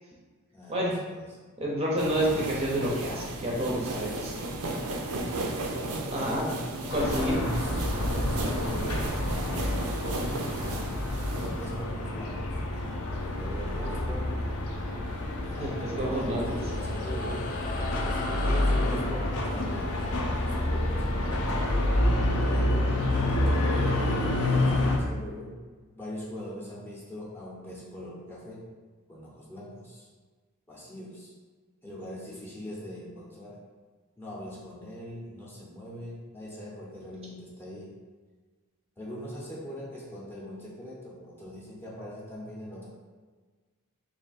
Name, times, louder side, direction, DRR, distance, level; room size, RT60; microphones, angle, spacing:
voice 1, 0.5-1.4 3.9-4.2 7.1-10.9 11.4-14.5 15.4-17.5 18.0-21.8 22.4-25.6 25.9-28.7 29.1-30.1 30.7-31.3 31.8-33.6 34.2-38.0 39.0-42.9, equal, 10° left, -6 dB, 0.6 m, -41 dB
voice 2, 1.6-4.3 6.1-6.5 6.9-7.4 15.6-16.6, equal, 25° right, -4 dB, 0.6 m, -29 dB
sound 1, 2.0-11.8, right 2 dB, 75° right, 0.5 m, -34 dB
sound 2, 6.9-25.0, left 1 dB, 80° left, 0.6 m, -28 dB
sound 3, 16.0-22.8, left 3 dB, 40° left, 0.3 m, -40 dB
3.3 x 2.6 x 4.1 m, 1.4 s
head